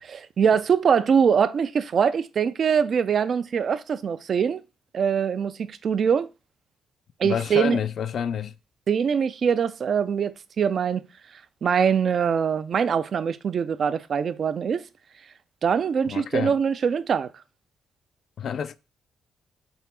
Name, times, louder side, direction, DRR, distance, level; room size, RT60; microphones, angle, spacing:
voice 1, 0.0-4.6 4.9-6.3 7.2-7.8 8.9-11.0 11.6-14.8 15.6-17.3, right 7 dB, 50° right, 0.3 m, -23 dB
voice 2, 7.2-8.5 16.0-16.5 18.4-18.7, left 8 dB, 60° left, 0.3 m, -28 dB
4.3 x 2.4 x 3.4 m
cardioid pair, 90°, 0 cm